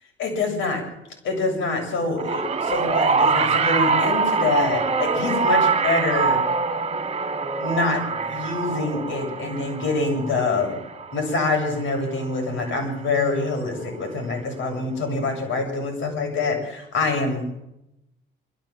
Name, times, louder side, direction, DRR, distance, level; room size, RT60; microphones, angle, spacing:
voice 1, 0.2-0.8 1.2-6.4 7.6-10.7 11.1-17.4, left 3 dB, 75° left, 3 dB, 7.5 m, -25 dB
sound 1, 2.2-12.6 13.7-13.8, right 4 dB, 30° right, 2.5 m, -24 dB
25.0 x 14.0 x 7.5 m, 0.88 s
cardioid pair, 90°, 20 cm